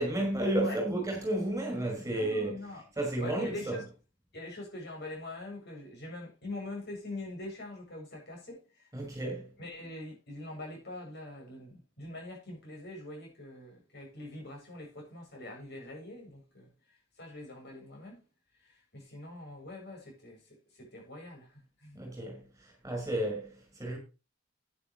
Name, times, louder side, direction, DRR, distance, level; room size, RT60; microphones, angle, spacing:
voice 1, 0.0-2.6 3.0-3.7 8.9-9.5 21.9-23.5 23.8-24.0, right 1 dB, 15° right, 5.5 m, -32 dB
voice 2, 1.9-2.9 3.2-3.9 4.3-8.9 9.6-18.2 18.6-22.0, left 2 dB, 55° left, 7.8 m, -44 dB
12.5 x 10.0 x 3.2 m
head